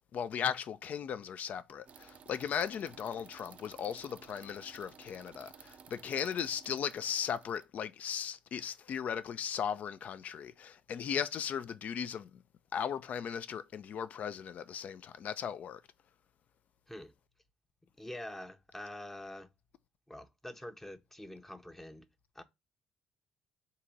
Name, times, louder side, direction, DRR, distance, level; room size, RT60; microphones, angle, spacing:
voice 1, 0.1-12.4 12.7-15.8, left 8 dB, 60° left, 0.4 m, -37 dB
sound 1, 1.9-7.7, right 7 dB, 50° right, 0.4 m, -56 dB
voice 2, 18.0-19.5 20.1-22.1 22.4-22.5, left 1 dB, 10° left, 0.7 m, -45 dB
3.8 x 2.8 x 4.5 m
supercardioid pair, 60°, 3 cm